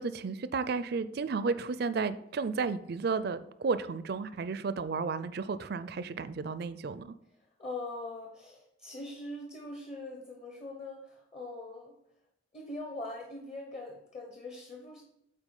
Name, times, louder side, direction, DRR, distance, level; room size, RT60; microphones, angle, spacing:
voice 1, 0.0-7.2, right 4 dB, 50° right, 13 dB, 0.4 m, -33 dB
voice 2, 7.4-12.0 12.5-15.0, left 2 dB, 30° left, 1 dB, 0.9 m, -42 dB
8.1 x 4.4 x 5.4 m, 0.78 s
head